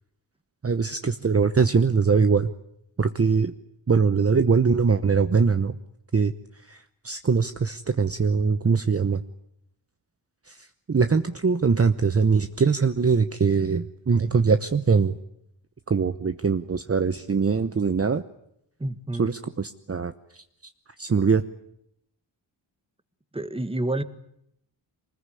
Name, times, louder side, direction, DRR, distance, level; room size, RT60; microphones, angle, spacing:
voice 1, 0.6-2.5 3.0-3.5 3.9-5.7 6.1-6.3 6.7-9.2 10.5-15.1 15.9-18.2 19.2-20.4 21.0-21.4, right 5 dB, 30° right, 10 dB, 0.9 m, -22 dB
voice 2, 18.8-19.3 23.3-24.0, right 1 dB, 10° right, 12 dB, 1.6 m, -28 dB
24.5 x 20.5 x 9.9 m, 0.76 s
wide cardioid pair, 90°, 46 cm